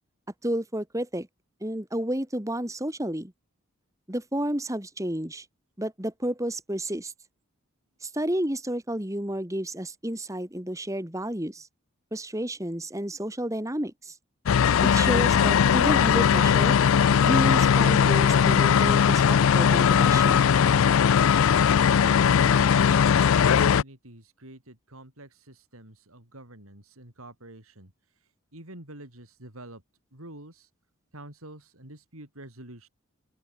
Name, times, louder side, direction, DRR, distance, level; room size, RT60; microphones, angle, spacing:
voice 1, 0.4-1.3 1.6-3.3 4.1-5.5 5.8-7.1 8.0-11.7 12.1-14.2 14.8-16.8 17.2-20.5, right 1 dB, 15° right, 2.3 m, -31 dB
sound 1, 14.5-23.8, left 7 dB, 70° left, 0.4 m, -19 dB
voice 2, 22.0-27.9 28.5-29.8 30.1-30.7 31.1-32.9, right 1 dB, 80° right, 6.0 m, -46 dB
open air
head